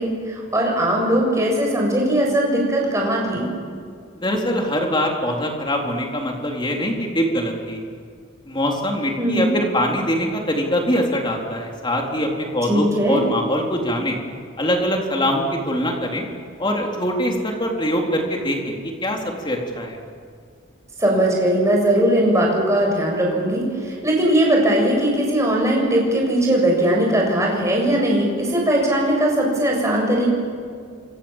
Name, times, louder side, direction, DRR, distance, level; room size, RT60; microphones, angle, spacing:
voice 1, 0.0-3.5 9.2-9.5 12.7-13.2 21.0-30.3, right 1 dB, 15° right, -1 dB, 7.4 m, -19 dB
voice 2, 4.2-7.8 8.5-14.2 14.6-16.3 16.6-18.7 19.0-19.2 19.4-20.0, equal, 20° left, 0 dB, 3.9 m, -23 dB
28.5 x 26.0 x 7.5 m, 2.2 s
head